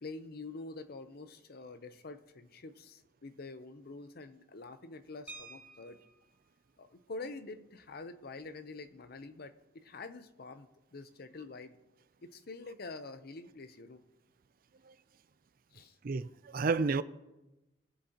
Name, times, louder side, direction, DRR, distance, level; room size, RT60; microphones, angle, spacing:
voice 1, 0.0-6.0 6.8-11.8 12.2-14.0 15.7-16.0, left 3 dB, 55° left, 0.7 m, -46 dB
sound 1, 5.3-6.4 7.8-7.9 8.3-8.5 8.8-9.1, right 3 dB, 10° right, 1.2 m, -51 dB
voice 2, 16.0-17.0, right 4 dB, 55° right, 0.4 m, -31 dB
22.0 x 7.9 x 2.9 m
head